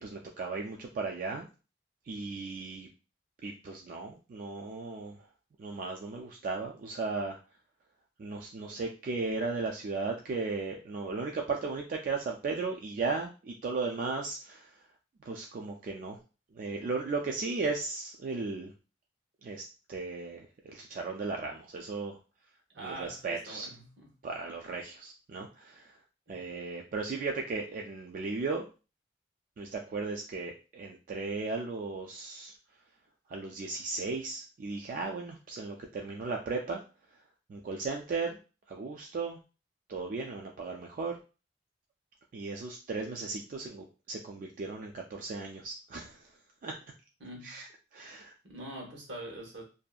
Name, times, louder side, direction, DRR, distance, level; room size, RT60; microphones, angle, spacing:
voice 1, 0.0-1.5 2.1-2.9 3.4-5.2 5.6-7.4 8.2-14.8 15.2-16.2 16.5-18.7 19.4-22.2 22.8-23.7 24.2-26.0 26.3-28.7 29.6-32.5 33.3-36.8 37.5-38.4 38.7-39.4 39.9-41.2 42.3-46.3 46.6-46.7 47.4-48.3, right 4 dB, 50° right, 0.3 m, -36 dB
voice 2, 22.7-24.1 26.3-26.4 47.2-47.5 48.4-49.6, right 1 dB, 80° right, 1.1 m, -43 dB
2.6 x 2.4 x 2.2 m
head